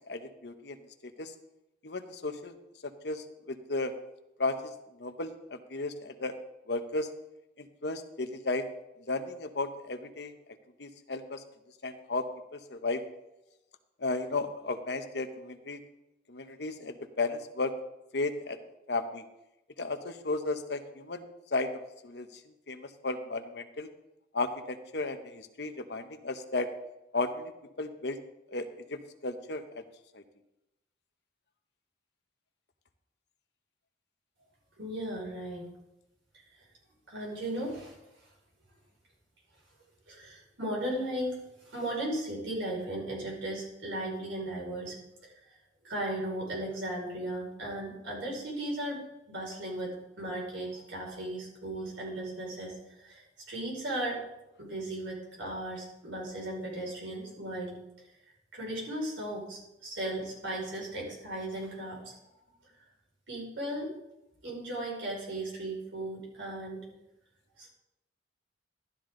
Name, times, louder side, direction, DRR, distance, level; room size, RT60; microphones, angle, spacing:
voice 1, 0.1-0.8 1.2-1.3 1.8-2.5 3.0-3.9 4.4-4.5 5.0-6.3 6.7-7.1 7.6-8.6 9.1-10.3 10.8-11.4 11.8-12.2 12.5-13.0 14.0-15.8 16.3-17.7 18.1-18.6 18.9-19.2 19.8-21.2 21.5-22.3 22.7-23.9 24.3-26.7 27.1-27.5 27.8-28.2 28.5-29.8 30.1-30.2, left 3 dB, 60° left, 8 dB, 0.9 m, -34 dB
voice 2, 34.8-35.7 37.1-38.0 40.1-45.0 45.2-45.6 45.8-54.2 54.6-57.8 58.5-62.1 63.3-63.9 64.4-66.9 67.6-67.7, right 1 dB, 80° right, -2 dB, 5.5 m, -36 dB
12.5 x 12.0 x 3.9 m, 0.90 s
head